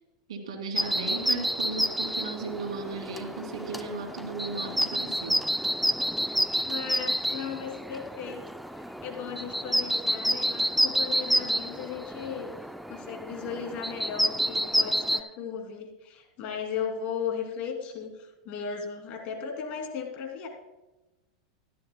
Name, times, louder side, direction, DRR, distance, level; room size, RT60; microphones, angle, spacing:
voice 1, 0.3-5.4, right 3 dB, 90° right, 4 dB, 2.6 m, -36 dB
sound 1, 0.8-15.2, equal, ahead, 0.4 m, -29 dB
voice 2, 6.6-8.4 9.0-12.5 12.9-20.5, left 7 dB, 45° left, 3 dB, 2.6 m, -36 dB
14.5 x 12.5 x 2.2 m, 1.0 s
supercardioid pair, 125°, 3 cm